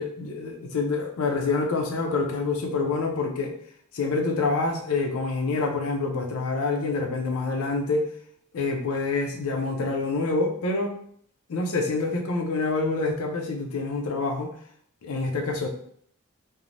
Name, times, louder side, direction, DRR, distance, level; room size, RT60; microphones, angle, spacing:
voice 1, 0.0-3.5 3.9-8.1 8.5-10.9 11.5-14.5 15.0-15.7, left 3 dB, 85° left, 3 dB, 0.5 m, -26 dB
3.1 x 2.0 x 2.5 m, 0.64 s
head